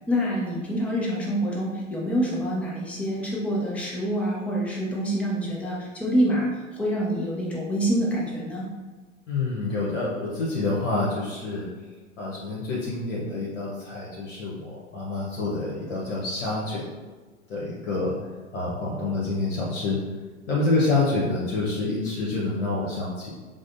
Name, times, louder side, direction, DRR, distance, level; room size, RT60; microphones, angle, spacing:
voice 1, 0.1-8.7, equal, 5° left, -4 dB, 0.3 m, -26 dB
voice 2, 9.3-11.7 12.2-16.8 17.5-18.1 18.5-20.0 20.5-23.3, left 2 dB, 70° left, -6 dB, 0.9 m, -27 dB
4.7 x 2.1 x 2.5 m, 1.3 s
figure-of-eight pair, 90°, 39 cm